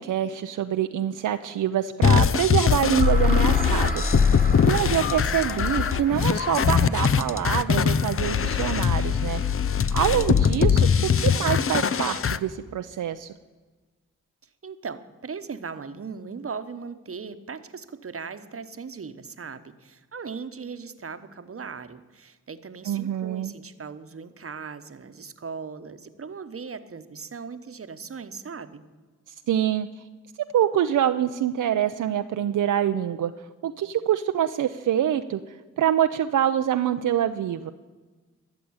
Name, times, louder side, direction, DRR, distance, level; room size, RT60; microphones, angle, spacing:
voice 1, 0.0-4.0 4.6-9.4 9.9-10.9 11.2-13.3 22.9-23.5 29.5-29.9 30.5-33.3 33.6-35.4 35.8-37.7, right 10 dB, 75° right, 8 dB, 0.5 m, -25 dB
sound 1, 2.0-12.4, left 7 dB, 45° left, 0.6 m, -22 dB
sound 2, 2.7-10.6, left 1 dB, 25° left, 2.7 m, -33 dB
voice 2, 14.6-28.8, right 5 dB, 45° right, 11 dB, 1.0 m, -38 dB
13.5 x 6.9 x 9.6 m, 1.3 s
cardioid pair, 45°, 32 cm